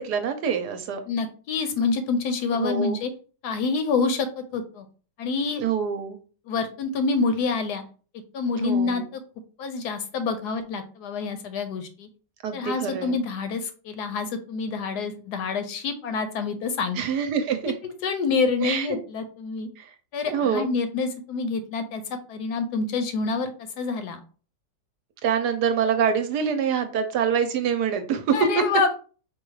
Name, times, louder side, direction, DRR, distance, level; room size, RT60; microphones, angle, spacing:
voice 1, 0.0-1.0 2.5-3.0 5.6-6.2 8.6-9.1 12.4-13.2 17.0-17.7 18.6-19.0 19.8-19.9 20.3-20.7 25.2-28.4, right 7 dB, 70° right, 7 dB, 1.1 m, -25 dB
voice 2, 1.1-3.1 3.4-4.9 5.2-5.6 6.5-7.8 8.3-9.2 9.6-12.1 12.5-17.0 17.8-19.7 20.1-22.0 22.3-24.2 28.3-29.0, left 4 dB, 70° left, 9 dB, 1.1 m, -27 dB
4.8 x 2.3 x 4.7 m, 0.38 s
omnidirectional pair, 2.0 m